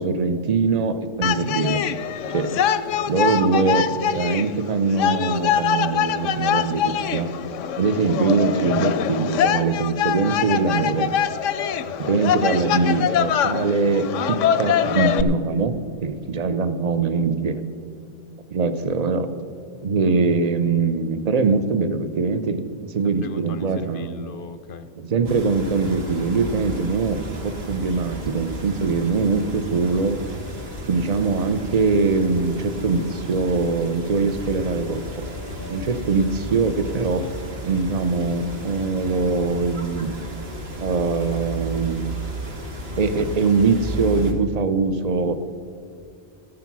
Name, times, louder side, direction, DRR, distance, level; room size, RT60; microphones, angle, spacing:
voice 1, 0.0-1.8 2.3-2.5 3.1-7.3 7.8-11.1 12.0-15.7 16.0-17.6 18.5-19.3 19.8-24.2 25.0-30.2 30.9-35.3 35.7-37.3 37.6-40.1 40.8-42.0 43.0-45.3, right 4 dB, 40° right, 11 dB, 0.7 m, -22 dB
sound 1, 1.2-15.2, left 8 dB, 90° left, 1.0 m, -23 dB
voice 2, 2.5-3.3 11.9-12.3 23.0-24.9 35.4-35.8, left 5 dB, 55° left, 12 dB, 0.7 m, -39 dB
sound 2, 25.2-44.3, equal, 55° right, 1.7 m, -34 dB
14.0 x 9.9 x 6.1 m, 2.5 s
omnidirectional pair, 1.2 m